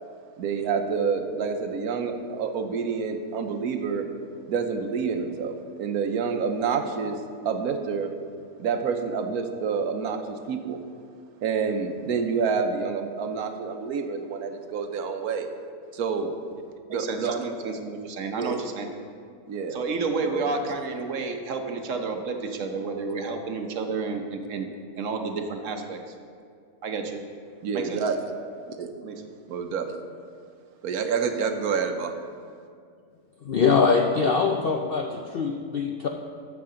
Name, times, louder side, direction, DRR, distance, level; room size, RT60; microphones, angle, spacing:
voice 1, 0.4-4.1 4.5-8.1 8.6-10.8 11.4-15.5 15.9-16.3 16.9-17.4 18.3-18.6 19.5-19.8 20.2-20.5 27.6-28.4 28.7-28.9 29.5-30.0 30.8-32.1, right 5 dB, 80° right, 6 dB, 1.2 m, -28 dB
voice 2, 16.9-18.9 19.7-24.7 25.0-26.0 26.8-27.2 27.7-28.0 29.0-29.1, right 4 dB, 60° right, 5 dB, 1.1 m, -30 dB
voice 3, 33.4-36.1, left 5 dB, 65° left, 2 dB, 0.5 m, -23 dB
12.5 x 7.5 x 3.8 m, 2.3 s
omnidirectional pair, 1.6 m